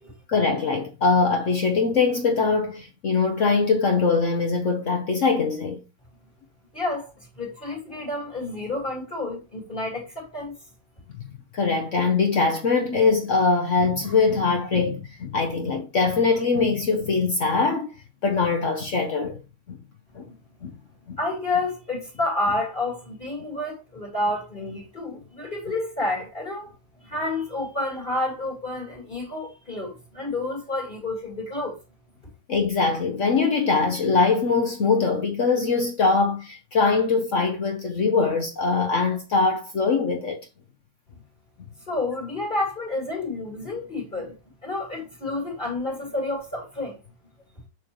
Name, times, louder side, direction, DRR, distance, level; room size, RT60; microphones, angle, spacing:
voice 1, 0.3-5.8 11.5-17.9 18.2-19.4 19.7-19.8 20.1-20.2 20.6-20.7 21.1-21.2 32.5-40.4, left 4 dB, 60° left, 0.8 m, -22 dB
voice 2, 6.7-10.5 20.2-20.3 21.2-26.7 27.0-31.8 41.9-44.4 44.6-47.0, left 2 dB, 25° left, 2.0 m, -29 dB
6.8 x 6.2 x 3.0 m
omnidirectional pair, 2.3 m